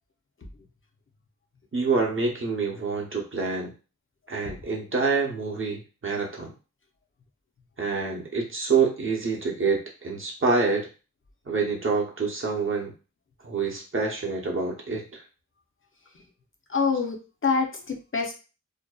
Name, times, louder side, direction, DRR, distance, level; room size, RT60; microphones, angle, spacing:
voice 1, 1.7-3.7 4.3-6.5 7.8-10.9 11.5-12.9 13.4-15.2, right 4 dB, 45° right, -1 dB, 0.7 m, -27 dB
voice 2, 16.7-18.3, left 5 dB, 45° left, 2 dB, 0.5 m, -26 dB
2.5 x 2.1 x 2.2 m, 0.33 s
wide cardioid pair, 75°, 30 cm